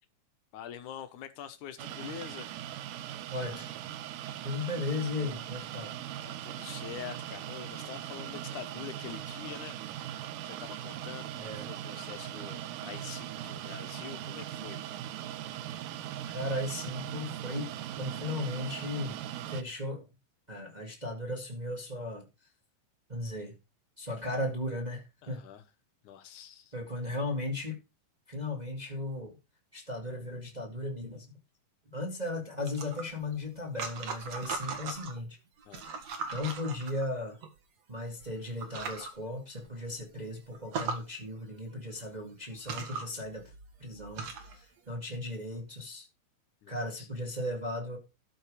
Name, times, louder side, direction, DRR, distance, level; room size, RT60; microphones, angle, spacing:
voice 1, 0.5-3.1 6.2-9.8 10.4-14.9 25.2-25.6 26.0-26.7 35.7-35.9 43.1-43.2 46.6-47.1, left 10 dB, 65° left, 2.4 m, -45 dB
sound 1, 1.8-19.6, right 11 dB, 75° right, 2.3 m, -40 dB
voice 2, 3.3-3.7 4.4-6.0 11.4-11.7 16.3-19.2 19.5-20.1 20.5-22.2 23.1-23.5 24.0-25.4 26.7-27.8 28.3-29.4 29.7-31.4 31.9-35.4 36.3-37.4 37.9-43.5 43.8-46.1 46.7-48.0, left 2 dB, 15° right, 1.4 m, -36 dB
sound 2, 32.6-35.2 35.6-37.5 38.2-38.3 38.6-39.1 39.6-39.7 40.0-40.1 40.5-41.0 42.0-42.1 42.5-44.6, right 5 dB, 50° right, 2.7 m, -39 dB
13.0 x 5.8 x 4.9 m
omnidirectional pair, 4.2 m